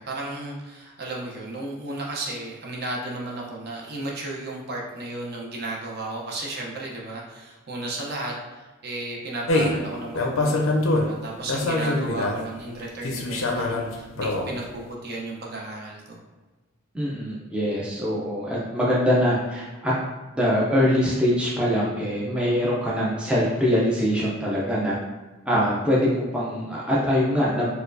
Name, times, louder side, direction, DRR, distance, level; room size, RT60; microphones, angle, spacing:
voice 1, 0.0-16.2, right 2 dB, 50° right, -2 dB, 0.6 m, -34 dB
sound 1, 9.5-9.8 10.1-11.1 11.5-12.4 13.0-14.5, left 2 dB, 75° left, 0.5 m, -24 dB
voice 2, 16.9-19.9 20.3-25.0 25.5-27.7, equal, 5° right, -6 dB, 0.4 m, -23 dB
4.2 x 2.2 x 2.5 m, 1.2 s
head